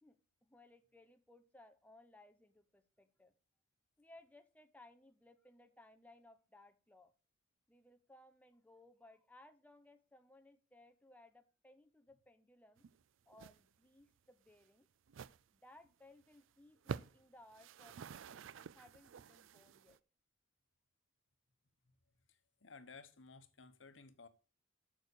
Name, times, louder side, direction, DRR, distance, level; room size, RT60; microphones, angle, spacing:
voice 1, 0.0-3.3 4.0-7.1 7.7-12.8 13.3-14.9 15.5-20.0, left 2 dB, 10° left, 0.9 m, -63 dB
sound 1, 12.8-13.0 13.3-13.6 13.9-14.0 14.5-14.6 15.1-15.4 15.8-15.9 16.2-16.4 16.8-17.2 17.5-20.0, right 6 dB, 85° right, 0.4 m, -49 dB
voice 2, 22.6-24.3, left 4 dB, 75° left, 1.1 m, -56 dB
8.8 x 6.4 x 6.8 m
head